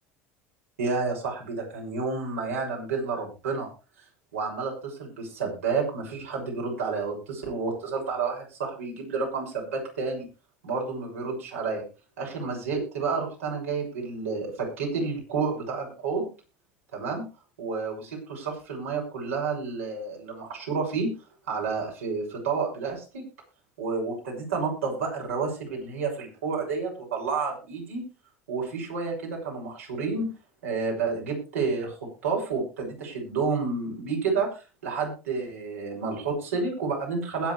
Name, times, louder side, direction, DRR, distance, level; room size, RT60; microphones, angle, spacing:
voice 1, 0.8-3.7 4.3-10.3 10.6-11.8 12.2-16.3 16.9-17.2 17.6-21.1 21.5-23.2 23.8-28.0 28.5-30.3 30.6-34.5 34.8-37.5, right 4 dB, 90° right, -1 dB, 6.5 m, -30 dB
21.0 x 8.0 x 3.3 m, 0.31 s
hypercardioid pair, 80°, 7 cm